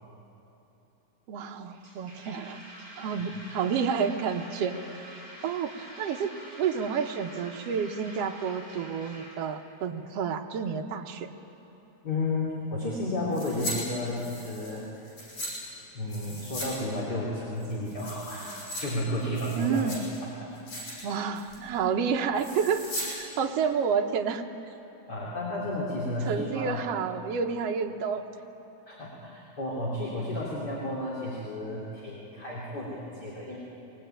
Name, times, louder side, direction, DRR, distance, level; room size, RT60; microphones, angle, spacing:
voice 1, 1.3-2.6 3.0-5.0 5.4-6.3 6.6-11.3 19.6-20.0 21.0-24.4 26.3-28.2, right 6 dB, 65° right, 4 dB, 1.9 m, -30 dB
sound 1, 1.7-9.3, equal, 20° right, 7.8 m, -47 dB
voice 2, 12.0-14.8 15.9-18.5 18.8-19.8 20.2-20.5 20.8-21.0 25.1-26.8 28.9-33.6, left 1 dB, 35° left, -6 dB, 3.4 m, -32 dB
sound 2, 13.3-13.8 14.1-15.5 16.1-16.7 17.0-17.1 17.6-18.8 19.2-20.2 20.5-21.0 21.3-21.7 22.3-23.1 23.4-23.5, equal, 75° left, 7.3 m, -38 dB
22.0 x 17.5 x 9.1 m, 3.0 s
omnidirectional pair, 3.4 m